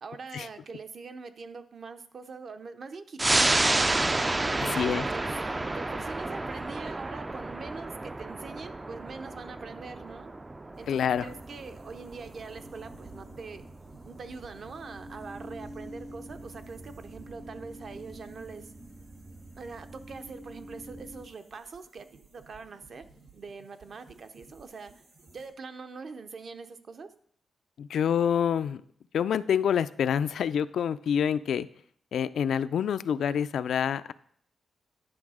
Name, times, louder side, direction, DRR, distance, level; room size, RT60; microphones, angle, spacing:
voice 1, 0.0-4.0 4.5-5.3 5.7-10.3 10.8-13.6 14.0-18.7 19.6-23.0 23.3-24.9 25.3-27.1, right 4 dB, 45° right, 9 dB, 0.6 m, -43 dB
sound 1, 3.2-14.2 14.6-14.7, right 2 dB, 15° right, 0.3 m, -30 dB
sound 2, 10.7-25.5, right 3 dB, 85° right, 2.4 m, -58 dB
voice 2, 10.9-11.2 27.8-28.8 29.1-31.7 32.1-34.1, left 8 dB, 80° left, 14 dB, 0.3 m, -27 dB
sound 3, 11.1-21.3, right 1 dB, 65° right, 2.7 m, -47 dB
10.5 x 6.2 x 4.9 m, 0.63 s
wide cardioid pair, 155°, 0 cm